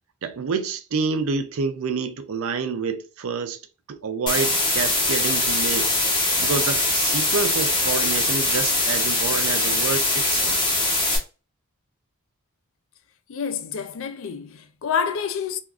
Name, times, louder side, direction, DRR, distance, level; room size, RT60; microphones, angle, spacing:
voice 1, 0.2-3.6 3.9-6.0 6.4-10.6, right 5 dB, 70° right, 0.4 m, -28 dB
sound 1, 4.3-11.2, left 2 dB, 20° left, 0.7 m, -22 dB
voice 2, 13.3-15.6, left 6 dB, 65° left, 0.4 m, -28 dB
3.6 x 2.4 x 2.3 m
head